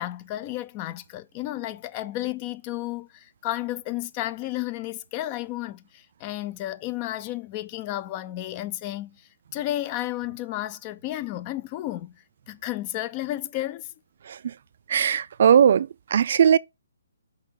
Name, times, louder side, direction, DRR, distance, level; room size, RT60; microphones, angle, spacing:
voice 1, 0.0-5.8 6.2-9.1 9.5-12.1 12.5-13.9, left 15 dB, 30° left, 0.7 m, -32 dB
voice 2, 14.9-16.6, right 8 dB, 55° right, 0.4 m, -18 dB
6.4 x 5.4 x 4.2 m
figure-of-eight pair, 135°, 0 cm